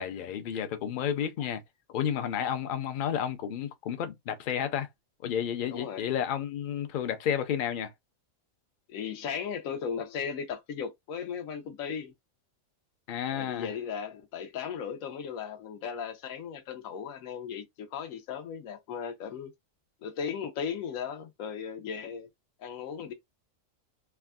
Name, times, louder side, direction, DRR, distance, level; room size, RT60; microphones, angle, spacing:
voice 1, 0.0-1.6 1.9-4.9 5.2-7.9 13.1-13.7, left 9 dB, 70° left, 0.5 m, -31 dB
voice 2, 5.7-6.1 8.9-12.1 13.3-19.5 20.0-22.3 22.6-23.1, left 7 dB, 90° left, 1.1 m, -36 dB
3.4 x 2.2 x 2.3 m
omnidirectional pair, 1.4 m